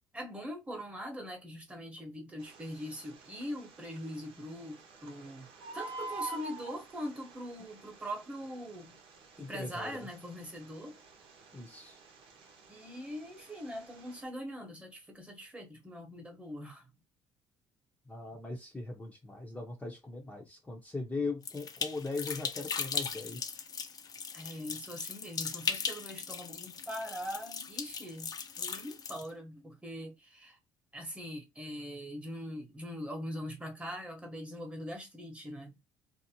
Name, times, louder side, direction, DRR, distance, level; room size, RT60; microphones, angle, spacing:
voice 1, 0.1-9.0 9.4-11.0 12.7-16.9 24.3-28.3 28.6-30.6 30.9-35.8, equal, 15° right, 1.1 m, -42 dB
Bird, 2.4-14.2, right 3 dB, 65° right, 0.9 m, -48 dB
voice 2, 9.4-10.0 11.5-12.0 18.1-23.6, left 3 dB, 15° left, 0.7 m, -39 dB
sound 1, 21.4-29.3, left 6 dB, 40° left, 0.5 m, -38 dB
2.6 x 2.0 x 2.8 m
supercardioid pair, 80°, 10 cm